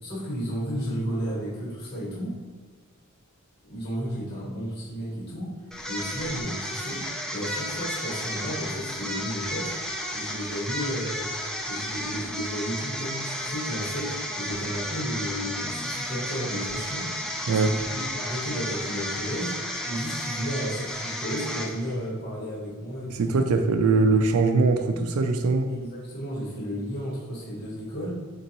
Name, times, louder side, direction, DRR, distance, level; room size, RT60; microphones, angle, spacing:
voice 1, 0.0-2.3 3.7-5.5 5.9-7.0 7.3-11.3 11.7-23.6 23.8-24.2 25.7-28.1, equal, 45° left, -7 dB, 1.4 m, -33 dB
sound 1, 5.7-22.0, equal, 5° left, 0.3 m, -33 dB
voice 2, 23.1-25.7, right 3 dB, 75° right, 6 dB, 0.3 m, -22 dB
4.4 x 3.9 x 2.9 m, 1.5 s
head